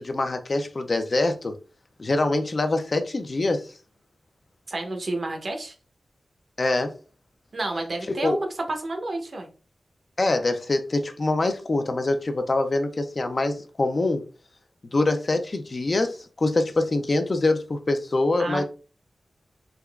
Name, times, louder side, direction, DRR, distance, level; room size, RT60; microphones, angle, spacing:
voice 1, 0.0-1.6 2.0-3.7 6.6-6.9 8.1-8.4 10.2-14.2 14.9-18.6, left 2 dB, 40° left, 0.4 m, -24 dB
voice 2, 4.7-5.7 7.5-9.5 18.4-18.6, right 2 dB, 50° right, 0.8 m, -30 dB
3.5 x 2.9 x 2.3 m
wide cardioid pair, 130°, 0 cm